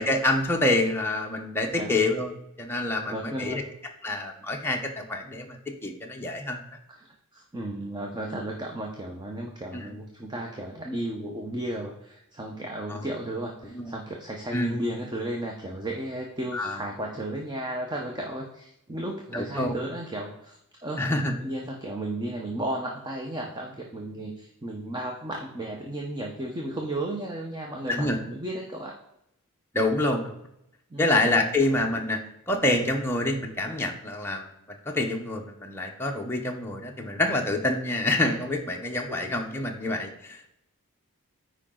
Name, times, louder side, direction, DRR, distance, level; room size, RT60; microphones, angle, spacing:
voice 1, 0.0-2.3 2.6-3.6 4.0-6.6 9.7-9.8 12.9-13.1 13.6-13.9 14.5-14.8 16.5-16.8 19.3-19.7 21.0-21.3 27.9-28.2 29.7-30.4 31.0-32.2 32.5-34.5 34.8-40.5, left 2 dB, 10° left, 0 dB, 0.8 m, -27 dB
voice 2, 3.1-3.6 6.9-21.1 21.4-29.0 30.9-31.4 39.1-39.3, right 1 dB, 20° right, 0 dB, 0.8 m, -34 dB
8.9 x 5.0 x 3.8 m, 0.81 s
head